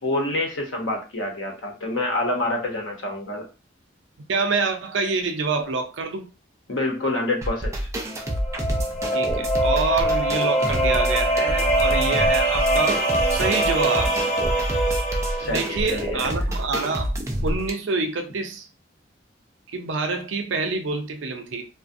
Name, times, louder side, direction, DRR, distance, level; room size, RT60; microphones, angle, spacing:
voice 1, 0.0-3.5 6.7-7.8 15.4-16.2, left 2 dB, 90° left, 0.8 m, -27 dB
voice 2, 4.3-6.3 9.1-13.0 13.3-14.2 15.4-17.1 17.4-18.7 19.7-21.7, right 4 dB, 80° right, 0.5 m, -26 dB
sound 1, 7.4-17.7, right 1 dB, 15° right, 0.3 m, -28 dB
sound 2, 8.1-15.9, right 1 dB, 40° left, 0.7 m, -23 dB
2.3 x 2.1 x 2.5 m
head